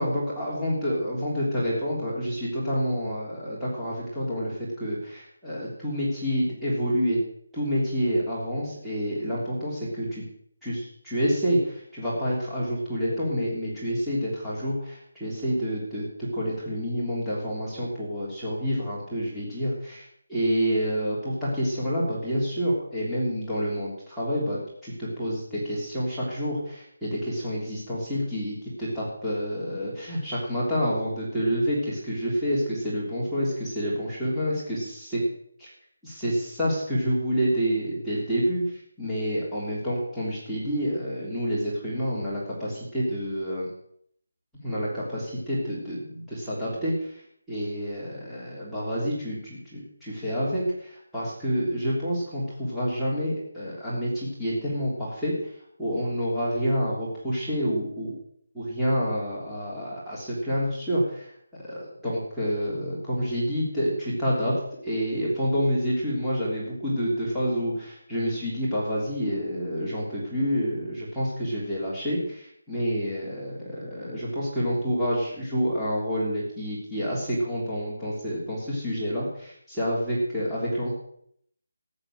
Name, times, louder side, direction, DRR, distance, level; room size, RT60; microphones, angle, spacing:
voice 1, 0.0-7.2 7.5-10.2 10.6-35.2 35.6-35.7 36.0-38.7 39.0-43.7 44.6-55.5 55.8-58.1 58.5-61.3 61.6-64.5 64.8-80.9, equal, ahead, -12 dB, 3.2 m, -28 dB
14.5 x 10.0 x 6.3 m, 0.68 s
figure-of-eight pair, 175°, 0 cm